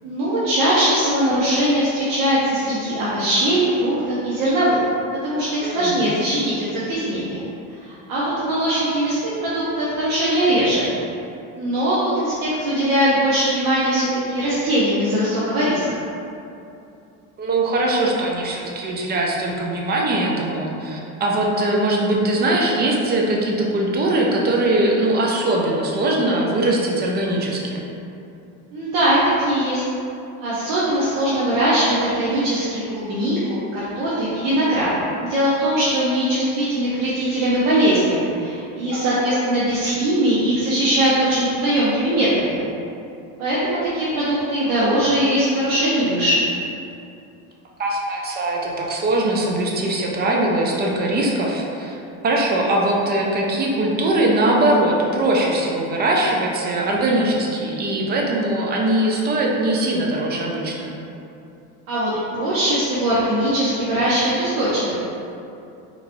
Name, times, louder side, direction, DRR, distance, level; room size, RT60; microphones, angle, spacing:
voice 1, 0.0-4.8 5.2-7.4 7.8-10.9 11.5-15.8 28.7-29.8 30.4-34.9 35.2-42.7 43.4-46.4 61.9-64.9, right 1 dB, 60° right, -9 dB, 0.9 m, -20 dB
voice 2, 5.6-6.1 17.4-27.8 38.9-39.5 47.8-52.0 52.2-60.9, right 1 dB, 25° right, -1 dB, 0.4 m, -21 dB
4.0 x 3.0 x 2.6 m, 2.7 s
supercardioid pair, 125°, 41 cm